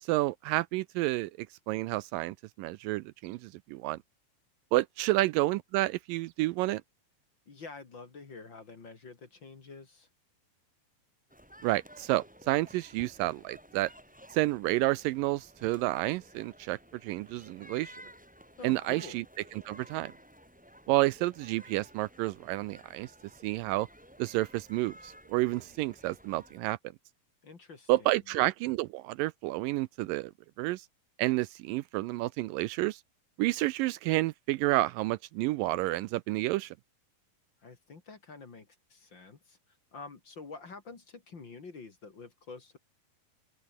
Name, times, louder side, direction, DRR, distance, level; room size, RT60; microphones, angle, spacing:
voice 1, 0.0-4.0 4.7-6.8 11.6-13.9 14.3-18.0 18.6-19.2 19.7-20.1 20.9-23.1 23.4-23.9 24.2-26.8 27.9-30.3 30.6-30.9 31.2-33.0 33.4-36.8, right 18 dB, 80° right, 2.2 m, -30 dB
voice 2, 7.5-10.1 18.6-19.2 27.4-28.2 37.6-39.6 39.9-42.8, left 4 dB, 35° left, 2.8 m, -48 dB
sound 1, 11.3-26.6, equal, ahead, 3.8 m, -54 dB
omnidirectional pair, 4.1 m